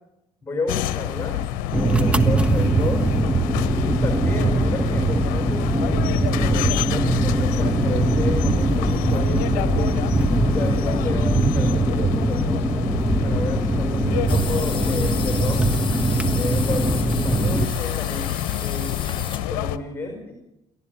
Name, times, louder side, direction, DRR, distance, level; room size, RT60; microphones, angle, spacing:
voice 1, 0.4-1.5 1.7-3.1 3.7-10.1 10.5-12.9 13.2-15.7 16.3-18.3 18.6-19.0 19.4-20.3, left 2 dB, 10° left, 3 dB, 5.4 m, -32 dB
sound 1, 0.7-19.8, left 13 dB, 65° left, 1.0 m, -28 dB
sound 2, 1.7-17.7, right 2 dB, 5° right, 1.3 m, -21 dB
sound 3, 14.3-19.5, left 6 dB, 30° left, 2.2 m, -34 dB
29.5 x 12.5 x 7.1 m, 0.89 s
hypercardioid pair, 55°, 16 cm